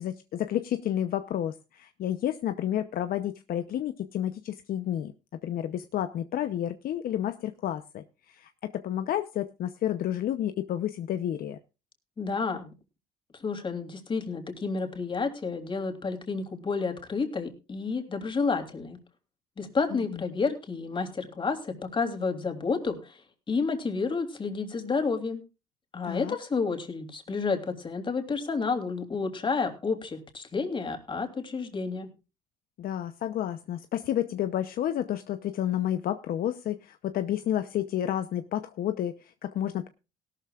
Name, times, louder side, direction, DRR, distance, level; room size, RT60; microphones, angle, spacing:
voice 1, 0.0-11.6 19.9-20.2 26.0-26.4 32.8-39.9, left 11 dB, 60° left, 9 dB, 0.8 m, -31 dB
voice 2, 12.2-12.7 13.4-19.0 19.6-23.2 23.5-25.4 25.9-32.1, left 4 dB, 30° left, 5 dB, 3.2 m, -30 dB
17.5 x 12.5 x 2.5 m, 0.29 s
cardioid pair, 110°, 17 cm